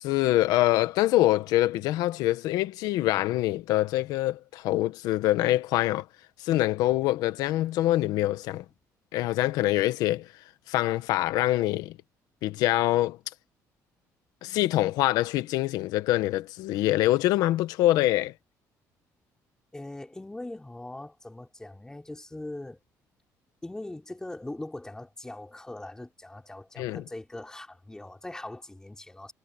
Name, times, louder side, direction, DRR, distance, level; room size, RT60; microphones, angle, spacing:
voice 1, 0.0-6.0 6.4-8.6 9.1-10.3 10.7-12.0 12.4-13.2 14.4-18.3 26.8-27.0, left 15 dB, 90° left, 1.3 m, -25 dB
voice 2, 19.7-22.8 23.6-29.3, left 2 dB, 10° left, 3.8 m, -41 dB
cardioid pair, 115°, 6 cm